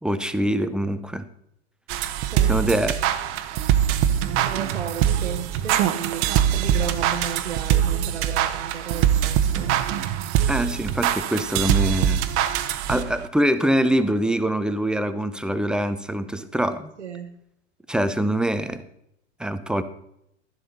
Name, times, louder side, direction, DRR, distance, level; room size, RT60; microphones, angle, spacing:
voice 1, 0.0-1.3 2.5-2.9 10.5-12.2 12.9-16.9 17.9-18.8 19.4-19.8, right 1 dB, ahead, 11 dB, 0.5 m, -24 dB
sound 1, 1.9-13.2, right 10 dB, 40° right, 0.9 m, -23 dB
voice 2, 2.2-2.6 3.3-3.9 4.3-9.7 12.9-13.0 17.0-17.4, right 7 dB, 75° right, 3 dB, 1.0 m, -34 dB
12.0 x 10.5 x 4.0 m, 0.78 s
figure-of-eight pair, 90°, 35 cm